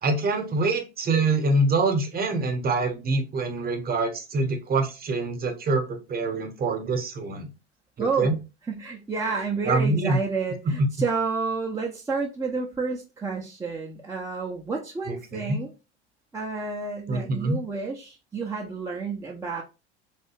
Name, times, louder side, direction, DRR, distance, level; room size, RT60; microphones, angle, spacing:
voice 1, 0.0-7.5 8.0-8.3 9.7-10.2 10.6-10.7 15.1-15.6 17.1-17.6, right 3 dB, 25° right, 0.9 m, -25 dB
voice 2, 8.0-8.4 8.7-15.7 16.3-19.6, right 4 dB, 10° right, 0.5 m, -30 dB
3.3 x 2.7 x 2.9 m
figure-of-eight pair, 80°, 35 cm